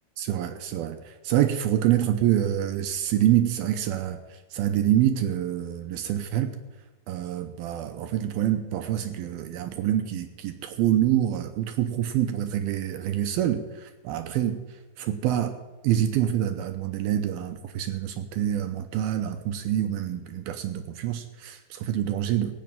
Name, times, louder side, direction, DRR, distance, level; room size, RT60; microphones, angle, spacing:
voice 1, 0.2-4.2 4.5-6.5 7.1-14.6 15.0-15.6 15.8-22.5, right 11 dB, 75° right, 8 dB, 2.4 m, -26 dB
16.5 x 8.5 x 8.9 m, 1.1 s
omnidirectional pair, 4.9 m